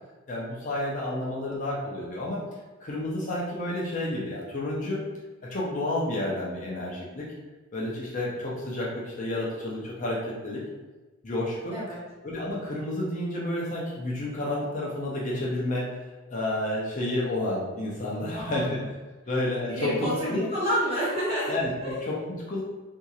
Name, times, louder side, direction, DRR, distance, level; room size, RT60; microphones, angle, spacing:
voice 1, 0.3-2.4 2.8-5.0 5.5-7.3 7.7-10.6 11.2-11.8 12.2-18.9 19.3-20.5 21.5-21.7 22.0-22.6, left 1 dB, 35° left, -5 dB, 0.6 m, -30 dB
voice 2, 18.3-18.6 19.7-21.9, equal, 30° right, -9 dB, 1.5 m, -29 dB
4.4 x 2.7 x 2.4 m, 1.2 s
head